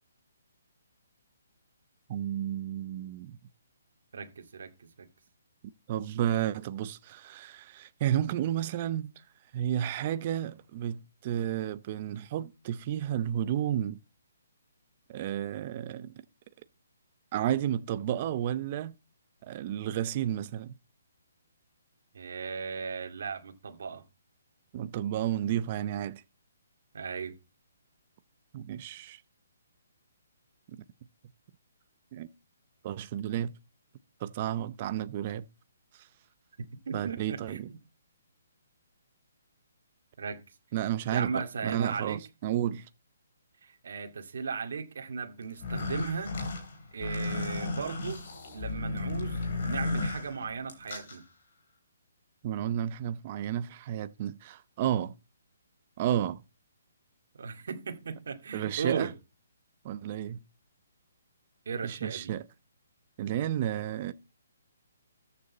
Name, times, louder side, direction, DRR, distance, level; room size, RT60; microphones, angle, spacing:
voice 1, 2.1-3.4 5.6-9.1 9.5-14.0 15.1-16.1 17.3-19.0 19.5-20.7 24.7-26.2 28.5-29.2 30.7-30.8 32.1-32.3 32.8-33.5 34.2-35.5 36.9-37.7 40.7-42.9 52.4-55.1 56.0-56.4 58.5-59.1 59.8-60.4 61.8-62.5 63.2-64.1, right 11 dB, 25° right, 0.6 m, -32 dB
voice 2, 4.1-5.1 22.1-24.0 26.9-27.3 36.9-37.8 40.2-40.4 41.1-42.2 43.6-46.4 46.9-48.2 48.5-51.2 57.3-59.1 61.7-62.3, right 5 dB, 55° right, 2.2 m, -36 dB
sound 1, 45.5-51.2, left 3 dB, 40° left, 3.3 m, -34 dB
13.5 x 6.7 x 4.1 m
hypercardioid pair, 175°, 0 cm